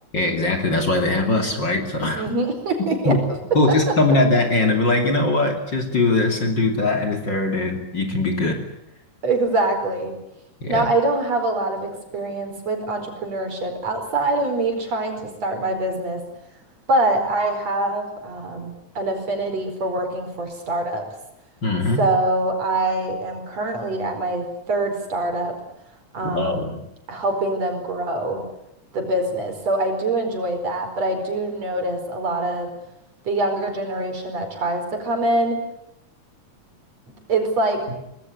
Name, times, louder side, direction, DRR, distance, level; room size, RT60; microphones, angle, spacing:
voice 1, 0.1-2.3 3.0-3.2 3.5-8.6 10.6-10.9 21.6-22.0 26.3-26.8, left 2 dB, 35° left, 4 dB, 3.2 m, -21 dB
voice 2, 2.1-3.1 3.9-4.0 9.2-10.2 10.7-16.2 16.9-21.0 22.0-25.5 26.1-26.7 27.1-28.4 28.9-32.7 33.3-35.6 37.3-38.0, right 2 dB, 60° right, 5 dB, 5.9 m, -24 dB
25.0 x 20.0 x 9.6 m, 0.83 s
omnidirectional pair, 3.4 m